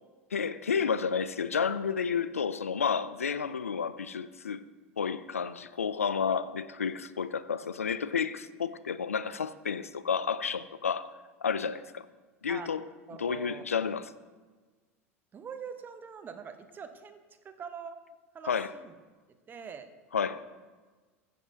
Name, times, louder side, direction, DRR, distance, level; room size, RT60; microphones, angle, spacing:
voice 1, 0.3-4.6 5.0-11.1 11.4-12.1 12.4-12.9 13.2-14.1 18.5-18.7 20.1-20.4, left 6 dB, 80° left, 0.3 m, -31 dB
voice 2, 13.1-13.7 15.3-17.2 17.4-18.0 18.3-18.9 19.5-19.9, right 6 dB, 25° right, 0.8 m, -43 dB
15.0 x 7.3 x 2.7 m
figure-of-eight pair, 75°, 8 cm